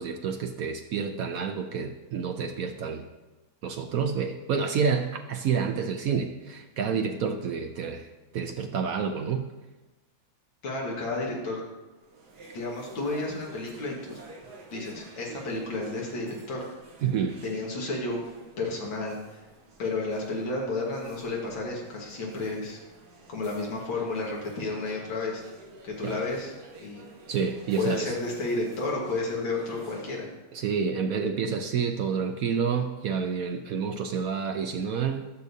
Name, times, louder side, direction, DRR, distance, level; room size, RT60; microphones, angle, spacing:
voice 1, 0.0-3.1 3.6-9.5 17.0-17.4 26.0-26.2 27.3-28.1 30.5-35.3, right 6 dB, 75° right, 5 dB, 0.8 m, -29 dB
voice 2, 10.6-11.6 12.5-14.2 14.7-16.6 17.4-18.2 18.6-19.4 19.8-22.8 23.3-25.4 25.8-26.5 26.8-27.0 27.8-30.3, left 2 dB, 80° left, -3 dB, 2.4 m, -31 dB
sound 1, 11.9-30.4, right 2 dB, 60° right, 1.6 m, -50 dB
14.0 x 6.5 x 2.7 m, 1.1 s
omnidirectional pair, 2.1 m